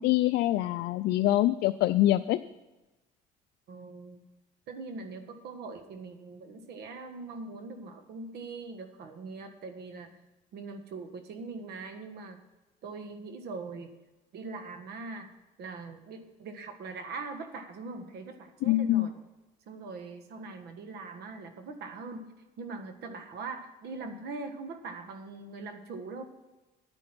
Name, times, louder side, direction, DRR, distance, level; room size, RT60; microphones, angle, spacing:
voice 1, 0.0-2.4 18.6-19.1, left 15 dB, 80° left, 10 dB, 0.4 m, -25 dB
voice 2, 3.7-4.2 4.7-10.2 10.5-12.4 12.8-13.9 14.3-15.3 15.6-19.1 19.7-22.3 22.6-26.2, right 3 dB, 70° right, 7 dB, 1.5 m, -41 dB
9.9 x 9.7 x 6.1 m, 1.1 s
cardioid pair, 110°, 17 cm